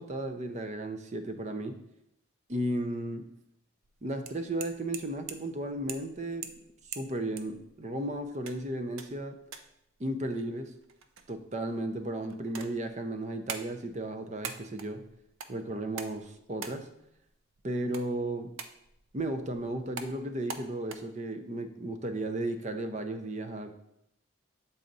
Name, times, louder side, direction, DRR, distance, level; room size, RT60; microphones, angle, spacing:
voice 1, 0.0-1.8 2.5-3.2 4.0-6.5 6.9-9.4 10.0-10.7 11.3-15.0 15.5-16.9 17.6-18.5 19.1-23.7, right 1 dB, 35° right, 7 dB, 0.5 m, -34 dB
sound 1, 3.8-21.0, right 6 dB, 80° right, 0.5 m, -46 dB
7.5 x 4.0 x 4.0 m, 0.79 s
head